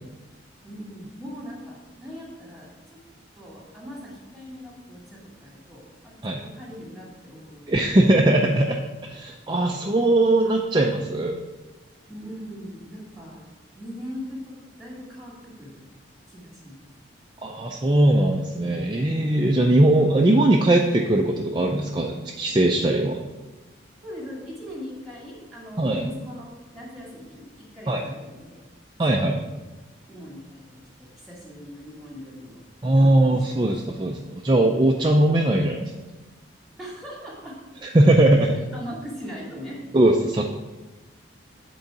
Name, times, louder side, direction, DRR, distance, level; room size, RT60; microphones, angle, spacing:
voice 1, 0.6-3.0 3.3-7.8 12.1-13.5 13.7-15.3 15.6-15.8 16.3-16.8 24.0-28.6 29.1-29.5 30.1-30.6 31.0-32.6 32.9-33.6 36.8-37.5 38.7-39.8, equal, ahead, -4 dB, 2.2 m, -40 dB
voice 2, 7.7-11.4 17.4-23.3 25.8-26.0 27.9-28.0 29.0-29.4 32.8-35.9 37.9-38.5 39.9-40.5, right 1 dB, 25° right, 1 dB, 0.4 m, -20 dB
8.0 x 3.9 x 5.8 m, 1.2 s
head